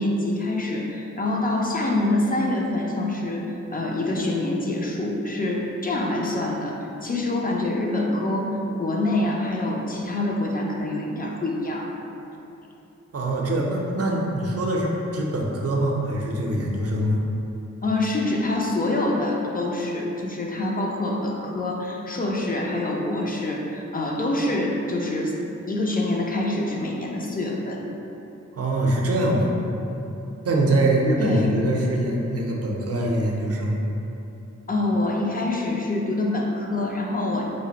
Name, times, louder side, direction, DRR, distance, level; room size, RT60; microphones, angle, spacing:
voice 1, 0.0-6.7 7.0-11.9 17.8-25.3 25.7-27.8 31.2-31.5 34.7-37.5, left 2 dB, 30° left, -1 dB, 0.4 m, -25 dB
voice 2, 13.1-17.2 28.5-29.5 30.4-33.8, right 1 dB, 55° right, -1 dB, 0.5 m, -23 dB
3.1 x 2.4 x 3.9 m, 2.9 s
wide cardioid pair, 105°, 29 cm